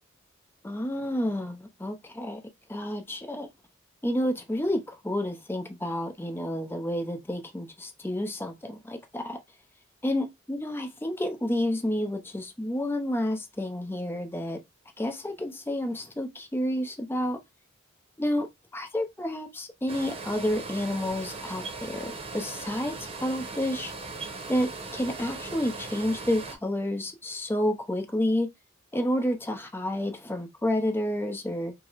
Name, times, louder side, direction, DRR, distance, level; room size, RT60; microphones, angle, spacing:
voice 1, 0.6-2.4 2.7-3.5 4.0-9.4 10.0-14.6 15.0-17.4 18.2-18.5 18.7-23.9 24.5-28.5 28.9-31.7, left 1 dB, 10° left, 0.6 m, -30 dB
sound 1, 19.9-26.6, right 3 dB, 30° right, 0.9 m, -39 dB
4.7 x 2.0 x 4.0 m
head